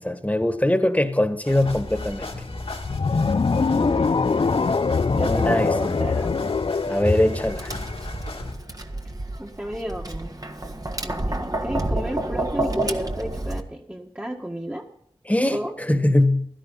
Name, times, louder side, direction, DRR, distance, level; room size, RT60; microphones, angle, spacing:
voice 1, 0.0-2.3 5.2-5.7 6.9-7.7 15.3-15.6 15.9-16.5, left 1 dB, 15° left, 1.7 m, -21 dB
sound 1, 1.4-8.5, left 2 dB, 80° left, 2.4 m, -35 dB
sound 2, 2.8-8.1, left 4 dB, 60° left, 0.5 m, -23 dB
voice 2, 3.7-4.6 5.2-6.4 9.4-10.4 11.0-14.9 15.5-15.7, equal, 15° right, 1.8 m, -32 dB
Tap, 7.4-13.6, right 1 dB, 40° right, 1.6 m, -29 dB
16.0 x 12.5 x 4.1 m
wide cardioid pair, 45°, 10 cm